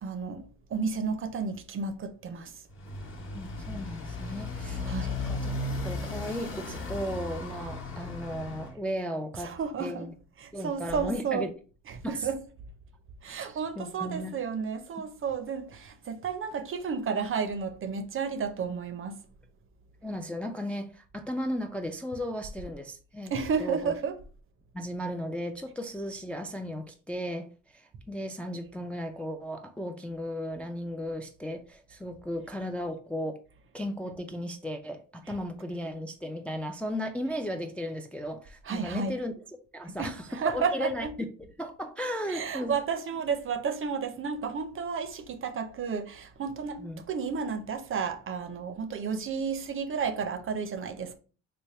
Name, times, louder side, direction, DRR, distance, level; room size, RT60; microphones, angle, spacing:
voice 1, 0.0-2.5 4.8-5.2 9.4-10.1 10.4-11.5 11.9-12.4 13.2-19.2 23.3-24.1 38.7-39.1 40.0-41.1 42.3-46.8 47.1-51.2, right 6 dB, 45° right, 0.6 m, -32 dB
Motorcycle, 2.7-8.7, left 2 dB, 40° left, 0.9 m, -35 dB
voice 2, 3.3-4.8 5.3-5.5 5.8-10.1 10.5-11.5 12.0-12.3 13.3-13.5 13.8-14.3 20.0-23.3 23.6-23.9 24.7-33.4 33.7-39.3 39.7-41.3 41.6-42.8 46.8-47.0, equal, 5° left, 0.3 m, -35 dB
3.3 x 2.1 x 4.1 m
cardioid pair, 90°, 30 cm